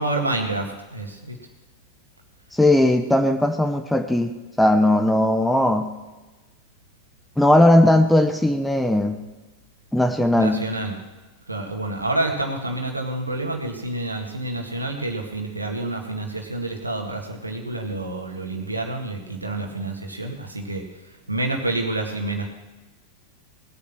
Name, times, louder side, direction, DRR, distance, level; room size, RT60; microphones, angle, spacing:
voice 1, 0.0-1.4 10.3-10.9 11.5-20.8 21.3-22.5, right 2 dB, 85° right, 3 dB, 1.9 m, -28 dB
voice 2, 2.5-5.9 7.4-9.2 9.9-10.6, left 1 dB, 5° left, 7 dB, 0.9 m, -18 dB
19.5 x 8.7 x 6.1 m, 1.1 s
figure-of-eight pair, 90°, 0 cm